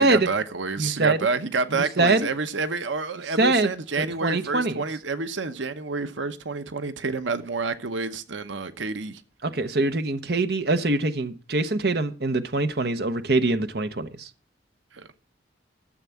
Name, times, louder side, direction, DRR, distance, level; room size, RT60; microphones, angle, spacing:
voice 1, 0.0-9.2 14.9-15.2, right 4 dB, 90° right, 1.0 m, -29 dB
voice 2, 0.8-1.2 1.7-2.3 3.4-3.7 4.0-4.8 9.4-14.3, right 2 dB, 55° right, 0.9 m, -23 dB
13.0 x 7.5 x 7.0 m
head